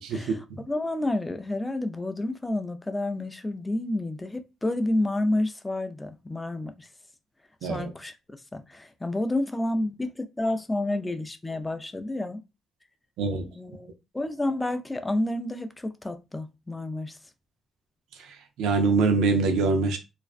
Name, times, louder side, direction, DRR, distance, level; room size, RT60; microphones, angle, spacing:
voice 1, 0.0-0.6 7.6-7.9 13.2-13.5 18.2-20.0, right 4 dB, 85° right, 0.4 m, -25 dB
voice 2, 0.7-6.9 7.6-8.1 8.5-12.4 13.6-17.2, left 1 dB, 15° left, 0.3 m, -30 dB
2.4 x 2.1 x 2.3 m
cardioid pair, 90°, 0 cm